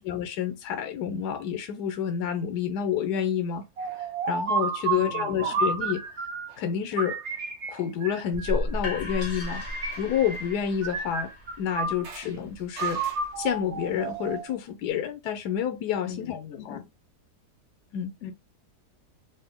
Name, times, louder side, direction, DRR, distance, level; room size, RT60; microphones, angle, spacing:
voice 1, 0.0-3.6 4.3-6.0 6.6-7.2 7.7-9.6 10.0-11.3 11.6-13.0 13.4-16.4 16.6-16.8 17.9-18.1, left 9 dB, 85° left, 1.2 m, -29 dB
sound 1, 3.8-6.5 7.0-8.8 9.4-10.5 10.8-12.3 12.8-14.5, right 4 dB, 55° right, 1.0 m, -31 dB
voice 2, 4.9-5.6 16.1-16.9 18.2-18.3, left 8 dB, 65° left, 0.7 m, -40 dB
sound 2, 8.3-14.1, equal, 35° left, 1.1 m, -36 dB
4.0 x 2.1 x 3.6 m
omnidirectional pair, 1.7 m